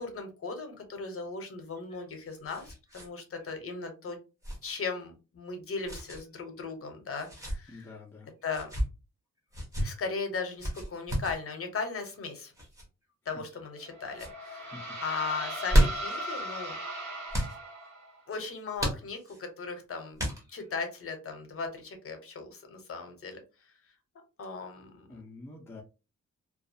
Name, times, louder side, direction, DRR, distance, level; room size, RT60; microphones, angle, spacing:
voice 1, 0.0-4.2 4.6-8.0 8.4-8.7 9.8-12.5 13.3-16.8 18.3-20.2 20.5-23.4 24.4-25.2, left 4 dB, 50° left, 5 dB, 0.7 m, -37 dB
sound 1, 1.8-3.1 3.4-3.5 4.4-4.7 5.8-6.2 7.1-7.6 8.5-8.9 9.5-9.9 10.6-11.4 12.5-12.9 13.5-13.9 14.1-14.4 15.4-16.2 17.3-17.6 18.8-19.4 20.2-20.7, equal, 10° right, 0.8 m, -30 dB
voice 2, 7.7-8.3 14.7-15.0 25.1-25.8, left 3 dB, 10° left, -1 dB, 0.4 m, -47 dB
sound 2, 13.8-18.2, equal, 85° right, 0.9 m, -38 dB
2.3 x 2.2 x 2.6 m, 0.30 s
wide cardioid pair, 150°, 29 cm